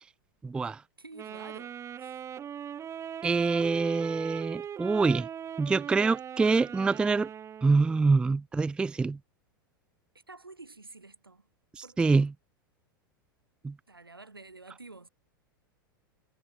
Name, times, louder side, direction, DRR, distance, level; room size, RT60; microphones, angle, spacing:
voice 1, 0.4-0.8 3.2-5.3 5.6-7.3 7.6-9.2 11.8-12.3 13.6-13.7, right 4 dB, 10° right, 0.3 m, -25 dB
voice 2, 1.0-2.3 10.3-11.5 11.8-12.2 13.9-15.1, right 3 dB, 85° right, 6.7 m, -49 dB
Wind instrument woodwind instrument, 1.1-8.1, right 9 dB, 25° right, 1.2 m, -40 dB
figure-of-eight pair, 90°, 12 cm